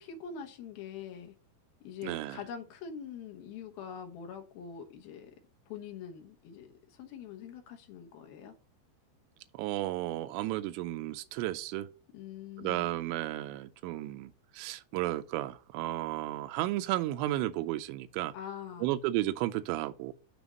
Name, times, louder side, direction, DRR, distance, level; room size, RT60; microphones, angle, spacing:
voice 1, 0.0-1.3 1.8-5.3 5.7-8.6 12.1-12.9 18.3-18.9, left 7 dB, 70° left, 2.5 m, -44 dB
voice 2, 2.0-2.4 9.5-11.9 12.6-18.3 18.8-20.1, right 15 dB, 90° right, 2.8 m, -33 dB
7.2 x 3.5 x 5.1 m
omnidirectional pair, 5.0 m